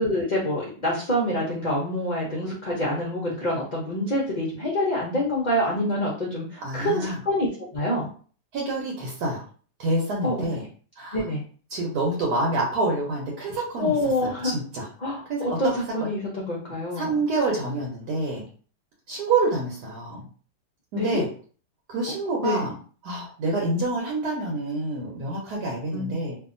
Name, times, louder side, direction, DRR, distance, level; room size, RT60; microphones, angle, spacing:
voice 1, 0.0-8.1 10.2-10.3 11.1-11.4 13.8-14.5 15.0-17.1 21.0-21.2 22.4-22.7 25.9-26.2, left 1 dB, 45° left, -5 dB, 0.5 m, -26 dB
voice 2, 6.6-7.1 8.5-9.4 9.8-10.7 11.0-11.2 11.7-14.9 15.3-15.7 16.0-16.1 17.0-18.4 19.1-20.2 20.9-21.3 21.9-22.7 23.0-26.4, right 2 dB, 70° right, -1 dB, 1.3 m, -27 dB
2.7 x 2.6 x 2.5 m, 0.41 s
omnidirectional pair, 1.8 m